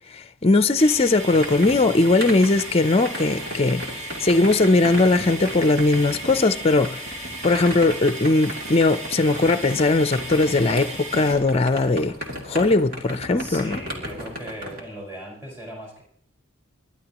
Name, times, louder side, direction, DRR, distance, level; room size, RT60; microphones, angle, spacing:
voice 1, 0.1-12.1 12.4-13.8, left 2 dB, 30° left, 0.5 m, -20 dB
sound 1, 0.8-14.8, equal, 45° right, 3.0 m, -36 dB
sound 2, 0.8-11.3, right 2 dB, 75° right, 5.3 m, -36 dB
voice 2, 13.4-16.0, equal, 10° right, 4.7 m, -38 dB
29.5 x 11.5 x 3.0 m
head